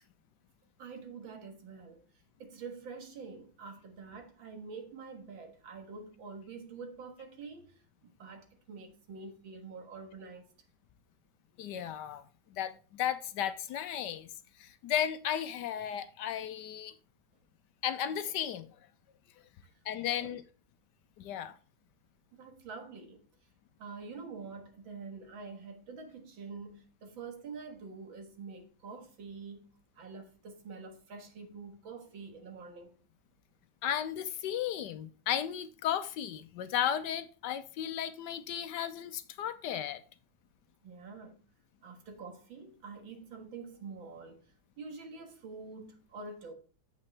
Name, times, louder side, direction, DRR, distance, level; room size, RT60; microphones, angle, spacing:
voice 1, 0.8-2.0 2.4-10.5 20.2-20.3 22.3-23.2 23.8-29.7 30.0-32.9 40.8-41.4 41.8-44.5 44.8-46.5, right 4 dB, 80° right, 2.3 m, -46 dB
voice 2, 11.6-14.3 14.6-16.9 17.8-18.8 19.8-20.4 21.2-21.6 33.8-40.0, left 10 dB, 70° left, 1.1 m, -34 dB
8.7 x 7.7 x 3.3 m
omnidirectional pair, 2.1 m